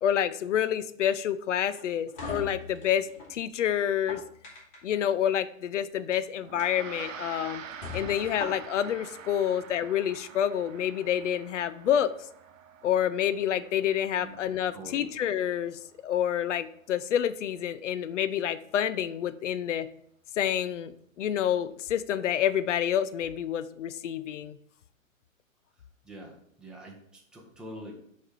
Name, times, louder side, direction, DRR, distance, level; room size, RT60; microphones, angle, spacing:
voice 1, 0.0-4.2 4.8-7.6 7.9-12.1 12.8-19.9 20.4-20.9 21.2-24.6, left 10 dB, 65° left, 14 dB, 0.5 m, -28 dB
sound 1, 1.6-3.3 3.9-5.0 6.0-6.2 6.6-6.7 7.2-7.3 7.8-8.9, left 3 dB, 40° left, 2.3 m, -40 dB
Gong, 6.4-16.0, right 7 dB, 75° right, 0.7 m, -46 dB
voice 2, 14.2-15.1 26.0-27.9, right 1 dB, ahead, -2 dB, 0.7 m, -45 dB
6.2 x 3.3 x 4.7 m, 0.68 s
figure-of-eight pair, 115°, 40 cm